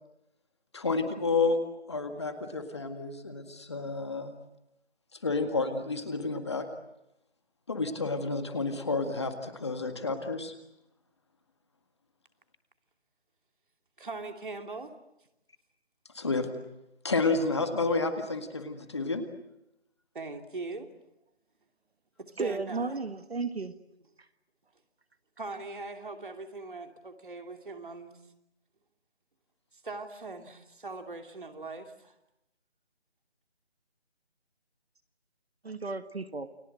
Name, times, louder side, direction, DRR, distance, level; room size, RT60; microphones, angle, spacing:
voice 1, 0.7-1.6 1.9-4.3 5.2-6.7 7.7-10.5 16.1-16.5 17.0-19.2, left 3 dB, 25° left, 7 dB, 1.9 m, -30 dB
voice 2, 14.0-14.9 20.1-20.9 22.2-23.0 25.4-28.2 29.7-32.1, right 3 dB, 50° right, 5 dB, 2.8 m, -41 dB
voice 3, 22.4-23.7 35.6-36.5, right 3 dB, 65° right, 10 dB, 1.7 m, -34 dB
30.0 x 22.5 x 7.8 m, 0.87 s
figure-of-eight pair, 170°, 33 cm